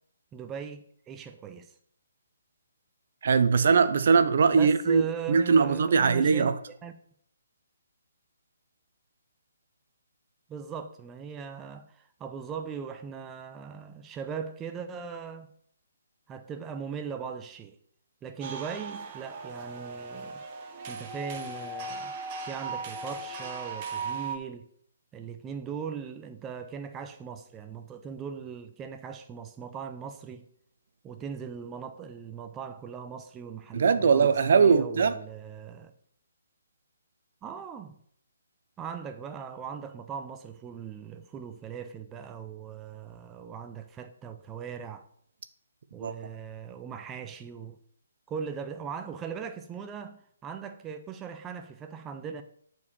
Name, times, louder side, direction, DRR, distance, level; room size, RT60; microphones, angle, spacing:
voice 1, 0.3-1.8 4.5-6.9 10.5-15.5 16.3-17.8 18.2-20.4 20.9-22.1 22.4-24.7 25.1-30.4 31.0-35.9 37.4-38.0 38.8-45.1 45.9-47.8 48.3-52.4, right 7 dB, 15° right, 0.6 m, -39 dB
voice 2, 3.2-5.0 5.3-6.5 33.7-35.1 46.0-46.1, right 5 dB, 55° right, 0.7 m, -21 dB
sound 1, 18.4-24.4, right 3 dB, 30° right, 1.2 m, -37 dB
8.2 x 4.6 x 6.8 m
figure-of-eight pair, 135°, 0 cm